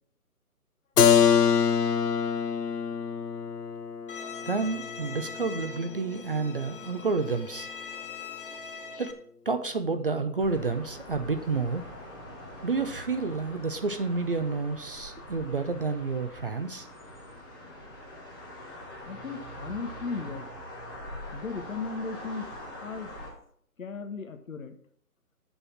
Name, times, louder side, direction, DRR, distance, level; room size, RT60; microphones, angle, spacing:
Keyboard (musical), 1.0-6.6, left 7 dB, 80° left, 0.8 m, -25 dB
Bowed string instrument, 4.1-9.1, left 6 dB, 35° left, 0.8 m, -42 dB
voice 1, 4.5-7.7 8.9-9.2 9.5-11.9 12.6-16.9, right 4 dB, 35° right, 8 dB, 0.6 m, -30 dB
sound 1, 10.4-23.3, left 1 dB, 10° left, 1.6 m, -43 dB
voice 2, 19.1-20.5 21.3-22.5 22.8-23.1 23.8-24.7, left 4 dB, 60° left, 8 dB, 1.3 m, -36 dB
7.0 x 5.5 x 7.4 m, 0.64 s
figure-of-eight pair, 145°, 46 cm